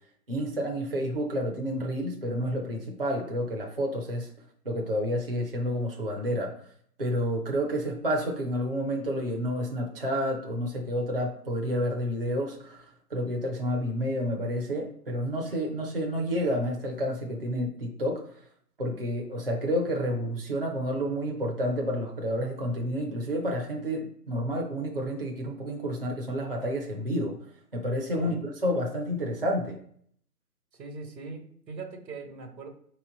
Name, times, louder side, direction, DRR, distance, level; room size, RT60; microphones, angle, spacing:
voice 1, 0.3-4.3 4.6-6.5 7.0-18.2 18.8-27.3 27.7-28.4 28.6-29.8, equal, 35° right, 0 dB, 0.5 m, -30 dB
voice 2, 30.7-32.7, right 4 dB, 85° right, 5 dB, 1.2 m, -41 dB
4.4 x 3.0 x 3.8 m, 0.63 s
hypercardioid pair, 170°, 49 cm